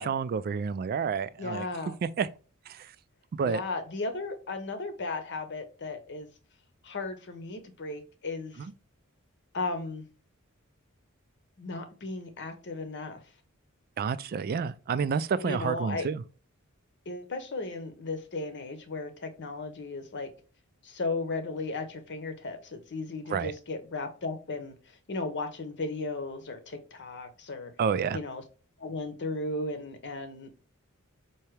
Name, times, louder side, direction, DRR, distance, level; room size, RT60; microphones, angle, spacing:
voice 1, 0.0-1.7 2.0-2.3 2.7-2.9 3.3-3.6 8.6-8.7 14.0-16.2 23.3-23.5 27.8-28.2, right 6 dB, 45° right, 0.3 m, -29 dB
voice 2, 1.4-1.9 3.4-6.3 6.8-8.6 9.5-10.1 11.6-13.2 15.4-16.1 17.1-20.3 20.8-24.7 25.1-27.7 28.1-28.4 28.8-30.5, left 3 dB, 55° left, 0.9 m, -35 dB
4.5 x 2.9 x 3.2 m
head